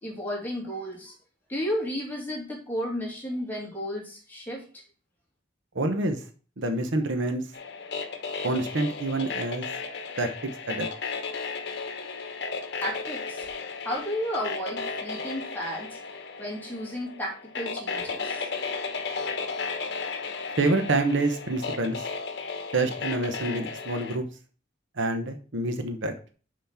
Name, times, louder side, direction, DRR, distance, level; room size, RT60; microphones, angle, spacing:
voice 1, 0.0-1.1 1.5-4.8 12.8-13.4 13.8-16.0 16.4-18.5, equal, 10° left, -3 dB, 2.3 m, -33 dB
voice 2, 5.7-6.2 6.6-7.4 8.4-9.7 10.2-10.3 10.7-10.9 20.6-22.0 22.7-24.2 25.0-26.1, right 2 dB, 70° right, 7 dB, 1.0 m, -27 dB
sound 1, 7.5-24.2, left 4 dB, 60° left, 1.1 m, -34 dB
5.8 x 5.2 x 5.7 m, 0.39 s
head